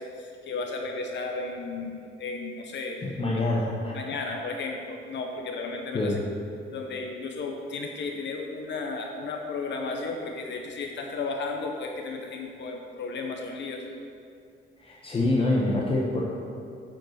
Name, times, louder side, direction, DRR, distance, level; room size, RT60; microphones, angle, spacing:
voice 1, 0.0-3.1 3.9-6.2 6.7-13.9, left 3 dB, 60° left, 2 dB, 0.8 m, -34 dB
voice 2, 3.0-3.9 5.9-6.2 14.8-16.2, left 2 dB, 25° left, -4 dB, 0.9 m, -26 dB
9.1 x 5.2 x 6.4 m, 2.6 s
wide cardioid pair, 170°, 21 cm